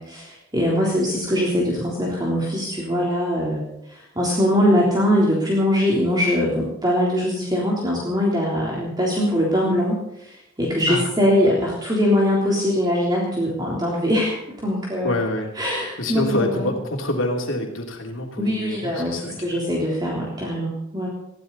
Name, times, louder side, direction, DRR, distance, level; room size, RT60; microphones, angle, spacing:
voice 1, 0.0-15.1 15.5-16.7 18.4-21.1, equal, 20° right, -4 dB, 3.5 m, -22 dB
voice 2, 15.0-15.5 16.0-19.6, left 1 dB, 70° left, 1 dB, 3.1 m, -26 dB
20.5 x 15.5 x 4.1 m, 0.83 s
head